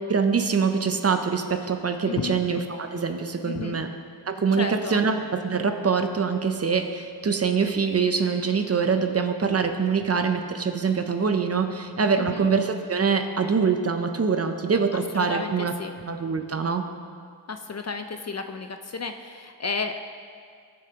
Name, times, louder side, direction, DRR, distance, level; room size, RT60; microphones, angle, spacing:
voice 1, 0.1-3.9 4.3-5.2 5.4-15.7 16.1-16.8, right 5 dB, 35° right, 6 dB, 0.6 m, -24 dB
voice 2, 2.0-2.4 3.4-3.8 4.5-5.0 12.2-12.5 14.9-15.9 17.5-20.0, left 4 dB, 35° left, 7 dB, 0.5 m, -32 dB
18.0 x 6.5 x 2.9 m, 2.2 s
wide cardioid pair, 120°, 46 cm